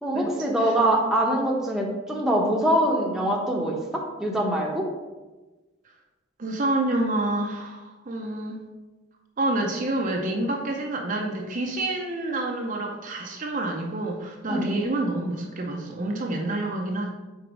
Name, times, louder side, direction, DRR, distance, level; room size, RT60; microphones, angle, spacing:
voice 1, 0.0-4.9 14.5-14.7, right 1 dB, ahead, -2 dB, 0.8 m, -24 dB
voice 2, 6.4-8.6 9.4-17.1, right 2 dB, 40° right, 1 dB, 0.6 m, -28 dB
4.6 x 4.0 x 5.1 m, 1.2 s
head